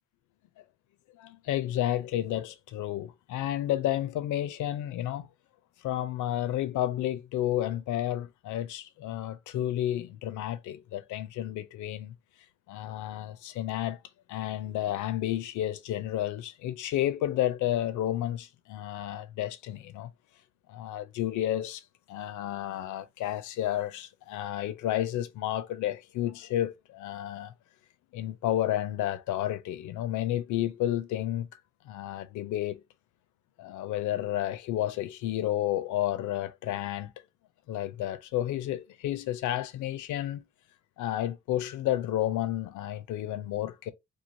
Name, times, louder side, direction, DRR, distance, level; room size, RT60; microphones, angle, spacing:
voice 1, 1.2-5.3 5.8-12.1 12.7-14.0 14.3-20.1 20.7-21.8 22.1-27.5 28.1-31.5 31.9-32.8 33.6-37.1 37.7-40.4 41.0-43.9, left 13 dB, 80° left, 0.5 m, -31 dB
3.1 x 2.3 x 2.6 m
cardioid pair, 90°, 30 cm